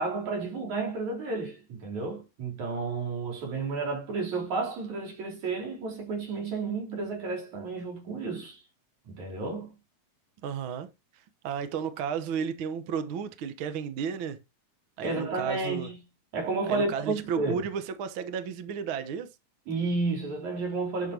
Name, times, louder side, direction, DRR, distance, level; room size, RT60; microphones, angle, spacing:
voice 1, 0.0-8.6 9.1-9.7 15.0-16.0 16.3-17.5 19.7-21.1, right 3 dB, 75° right, 5.7 m, -31 dB
voice 2, 10.4-10.9 11.4-14.4 15.0-15.9 16.7-19.3, right 7 dB, 55° right, 1.6 m, -33 dB
11.5 x 6.7 x 2.9 m
omnidirectional pair, 3.4 m